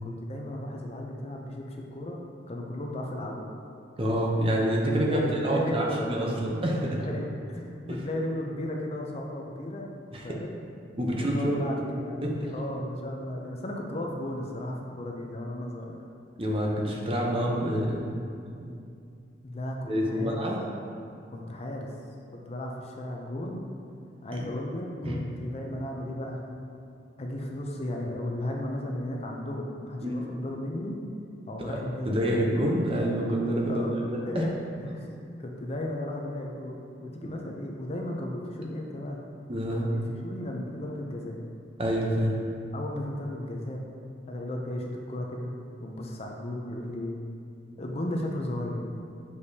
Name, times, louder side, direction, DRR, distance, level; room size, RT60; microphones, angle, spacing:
voice 1, 0.0-3.4 5.0-6.3 7.0-9.9 10.2-10.5 11.1-16.0 19.4-20.3 21.3-21.9 22.3-23.7 24.2-26.4 27.2-30.9 31.5-32.5 33.7-33.9 34.3-34.5 34.9-35.1 35.4-39.2 39.7-41.4 42.7-43.8 44.3-45.5 45.8-47.2 47.8-48.8, left 1 dB, 35° left, 0 dB, 0.5 m, -35 dB
voice 2, 4.0-7.0 7.9-8.0 10.1-10.3 11.0-11.6 12.2-12.3 16.4-18.1 19.9-20.6 24.3-24.5 25.0-25.2 30.0-30.3 31.6-31.8 32.1-34.4 37.2-37.3 39.5-39.8 41.8-42.4, equal, 30° right, -2 dB, 0.7 m, -27 dB
6.9 x 4.8 x 2.8 m, 2.5 s
head